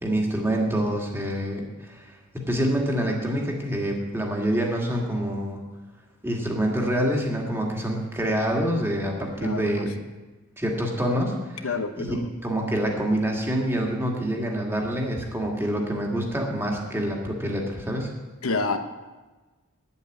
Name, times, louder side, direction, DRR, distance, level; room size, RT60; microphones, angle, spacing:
voice 1, 0.0-5.7 6.2-9.9 10.6-11.7 12.0-12.2 12.4-18.1, equal, 10° right, 0 dB, 2.0 m, -26 dB
voice 2, 9.4-9.7 11.6-12.3 18.4-18.8, left 3 dB, 80° left, 7 dB, 1.0 m, -27 dB
8.7 x 8.3 x 9.4 m, 1.2 s
head